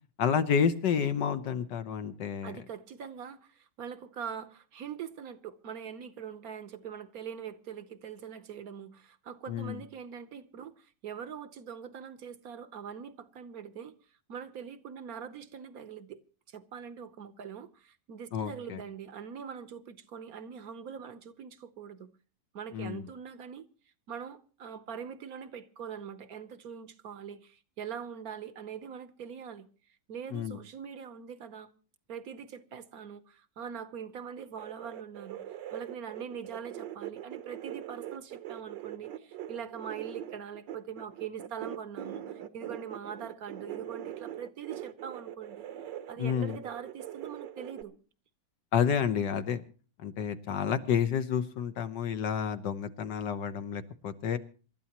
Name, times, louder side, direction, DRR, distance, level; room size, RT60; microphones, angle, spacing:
voice 1, 0.2-2.6 9.5-9.8 18.3-18.8 22.7-23.1 30.3-30.6 46.2-46.6 48.7-49.6 50.0-54.4, left 7 dB, 70° left, 1.6 m, -30 dB
voice 2, 2.4-14.0 14.3-16.2 16.5-22.1 22.5-23.7 24.1-29.7 30.1-31.7 32.1-45.7 46.1-48.0, right 7 dB, 60° right, 1.2 m, -43 dB
sound 1, 34.6-47.8, right 11 dB, 75° right, 1.6 m, -42 dB
27.0 x 12.5 x 2.9 m
omnidirectional pair, 2.0 m